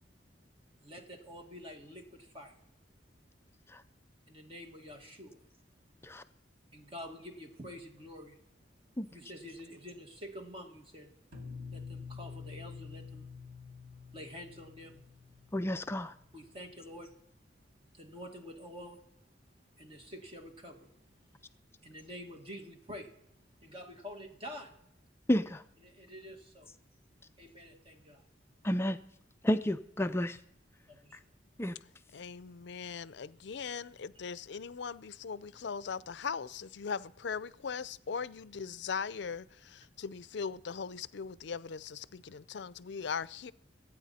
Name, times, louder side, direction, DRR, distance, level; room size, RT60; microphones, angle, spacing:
voice 1, 0.8-2.6 4.3-5.4 6.7-8.4 9.1-11.1 11.7-13.6 13.9-15.1 16.3-17.2 17.9-19.0 19.8-20.9 21.8-23.1 23.6-24.8 25.8-26.7 27.4-28.2 30.9-31.2, equal, 30° right, 2.1 m, -48 dB
sound 1, 11.3-16.2, left 5 dB, 55° right, 2.4 m, -47 dB
voice 2, 15.5-16.1 25.3-25.6 28.6-29.0 29.4-30.4 31.6-31.8, equal, 15° left, 0.4 m, -30 dB
voice 3, 32.1-43.5, left 6 dB, 70° left, 0.5 m, -39 dB
25.5 x 9.1 x 4.2 m
head